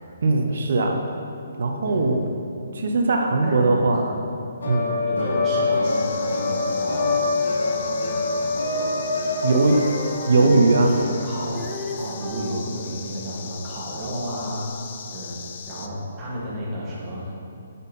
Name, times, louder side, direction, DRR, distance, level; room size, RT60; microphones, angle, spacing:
voice 1, 0.2-1.0 1.6-2.2 2.7-4.2 4.7-5.0 9.4-9.8 10.3-10.9, right 3 dB, 65° right, 3 dB, 0.7 m, -19 dB
voice 2, 1.9-2.2 3.4-3.8 4.6-7.2 7.6-9.0 9.4-9.9 10.7-11.7 12.0-14.8 15.1-15.4 15.7-17.3, equal, 20° right, -7 dB, 1.8 m, -33 dB
sound 1, 4.6-12.2, left 3 dB, 80° left, 1.7 m, -25 dB
sound 2, 5.8-15.9, left 7 dB, 45° left, 0.4 m, -39 dB
Female singing, 9.4-12.7 14.7-14.8, right 1 dB, 5° right, 0.6 m, -36 dB
7.4 x 5.5 x 4.2 m, 2.7 s
hypercardioid pair, 155°, 0 cm